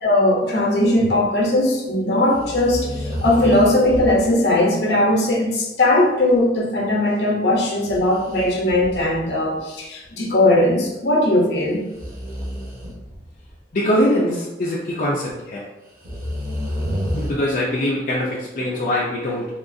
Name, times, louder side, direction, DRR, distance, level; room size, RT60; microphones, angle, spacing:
voice 1, 0.0-11.8, left 1 dB, 70° left, -1 dB, 0.8 m, -19 dB
sound 1, 2.3-4.3 7.8-9.4 10.0-10.1 11.9-13.5 15.3-15.4 16.0-17.3, equal, 50° right, 0.9 m, -29 dB
voice 2, 13.7-15.6 17.2-19.5, equal, 45° left, -5 dB, 0.4 m, -22 dB
3.6 x 2.3 x 2.5 m, 0.98 s
head